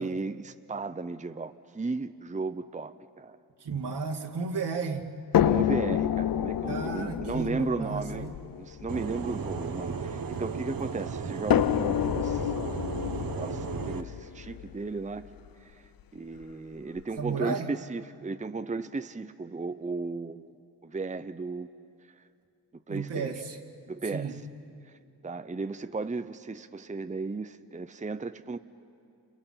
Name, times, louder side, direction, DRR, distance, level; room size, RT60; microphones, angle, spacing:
voice 1, 0.0-3.4 5.4-8.3 8.6-12.5 13.3-15.3 16.1-20.5 20.8-21.7 22.9-23.3 23.9-24.3 24.9-25.0 25.2-28.6, right 3 dB, 20° right, 10 dB, 0.7 m, -35 dB
voice 2, 3.6-5.1 6.7-8.3 17.2-17.7 22.9-23.6 24.1-24.3, right 5 dB, 80° right, 0 dB, 2.5 m, -33 dB
sound 1, 5.3-10.6 11.5-15.5 16.4-16.5 17.0-17.1, left 11 dB, 60° left, 0.5 m, -29 dB
sound 2, 8.9-14.0, right 5 dB, 55° right, 1.4 m, -35 dB
29.5 x 28.5 x 5.8 m, 2.5 s
cardioid pair, 60°, 40 cm